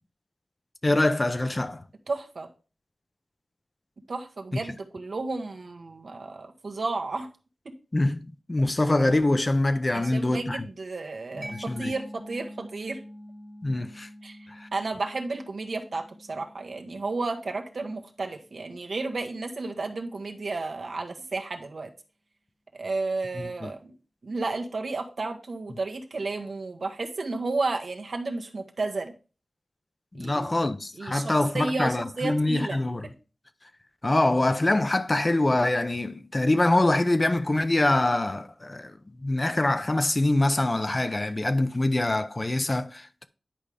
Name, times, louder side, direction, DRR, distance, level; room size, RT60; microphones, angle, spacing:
voice 1, 0.8-1.8 7.9-10.6 11.5-11.9 13.6-14.1 14.5-14.7 23.3-23.7 30.1-33.1 34.0-43.3, left 2 dB, 30° left, 0.6 m, -24 dB
voice 2, 2.1-2.5 4.1-7.3 9.9-13.0 14.2-14.4 14.7-21.9 22.7-23.9 24.2-29.1 30.1-30.5 30.9-32.8, right 3 dB, 70° right, 1.3 m, -32 dB
Mallet percussion, 11.4-18.8, equal, 5° right, 1.1 m, -46 dB
10.0 x 5.0 x 3.4 m
wide cardioid pair, 85°, 0 cm